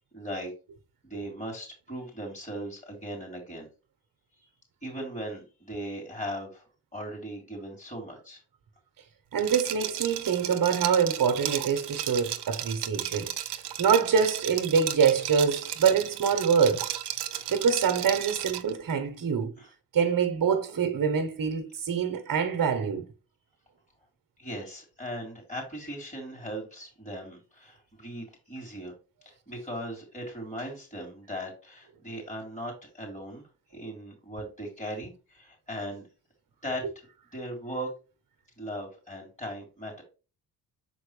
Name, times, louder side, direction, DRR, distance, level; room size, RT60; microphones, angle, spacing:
voice 1, 0.1-0.5 1.0-3.7 4.3-4.5 4.8-8.4 15.1-15.2 17.4-17.5 19.6-19.7 24.4-28.9 29.2-33.4 33.7-36.1 36.6-36.8 37.3-37.9 38.6-40.0, equal, 15° left, 3.5 m, -38 dB
voice 2, 9.3-16.9 17.5-19.5 19.9-23.0, right 6 dB, 55° right, 1.2 m, -25 dB
Liquid, 9.4-18.7, right 12 dB, 75° right, 0.8 m, -34 dB
6.1 x 4.6 x 3.3 m
cardioid pair, 65°, 41 cm